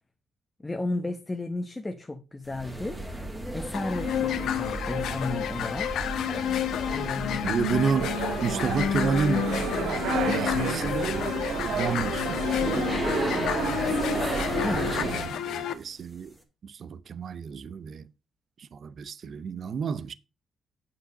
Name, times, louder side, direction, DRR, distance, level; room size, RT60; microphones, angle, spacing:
voice 1, 0.6-3.0 3.5-5.9 6.9-7.5 14.6-14.9, left 2 dB, 15° left, 1.0 m, -33 dB
sound 1, 2.5-15.4, right 1 dB, 10° right, 2.2 m, -34 dB
sound 2, 3.7-15.7, left 10 dB, 85° left, 1.1 m, -30 dB
voice 2, 7.4-9.5 10.3-11.3 11.7-12.9 14.7-16.4 16.6-18.1 18.6-20.1, right 6 dB, 50° right, 0.6 m, -30 dB
sound 3, 8.0-15.2, right 7 dB, 90° right, 1.5 m, -32 dB
8.8 x 5.6 x 6.4 m
cardioid pair, 135°, 0 cm